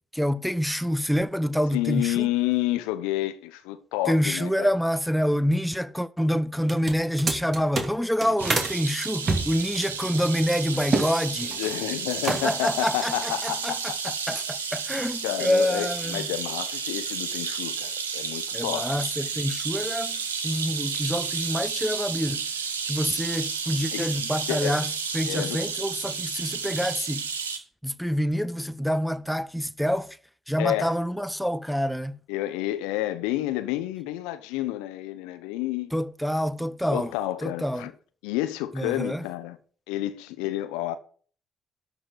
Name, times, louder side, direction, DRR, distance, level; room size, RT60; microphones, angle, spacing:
voice 1, 0.1-2.3 4.1-11.6 12.3-13.9 14.3-16.3 18.5-22.5 22.9-27.2 27.8-30.1 30.5-32.2 35.9-37.1 37.4-37.9 38.7-39.2, equal, ahead, 0.7 m, -27 dB
voice 2, 1.7-4.7 11.6-14.2 15.2-18.9 23.9-24.1 24.5-24.8 25.3-25.6 30.6-30.9 32.3-35.9 36.9-37.9 38.2-39.6 39.9-41.0, left 15 dB, 70° left, 0.8 m, -30 dB
sound 1, 6.6-8.7 9.2-11.1 11.4-11.8 12.1-12.7, right 3 dB, 40° right, 2.4 m, -28 dB
sound 2, 8.4-27.6, right 5 dB, 85° right, 1.0 m, -32 dB
12.5 x 4.4 x 7.9 m
figure-of-eight pair, 45°, 0 cm